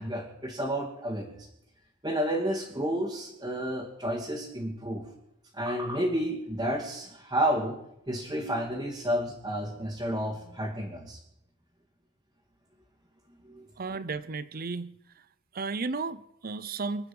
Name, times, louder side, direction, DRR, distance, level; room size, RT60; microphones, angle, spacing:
voice 1, 0.0-1.5 2.0-5.0 5.5-7.8 8.1-11.2 13.4-13.7, equal, 20° right, -4 dB, 2.5 m, -31 dB
voice 2, 13.8-15.3 15.5-17.1, right 4 dB, 45° right, 16 dB, 0.7 m, -34 dB
27.0 x 9.1 x 5.4 m, 0.80 s
head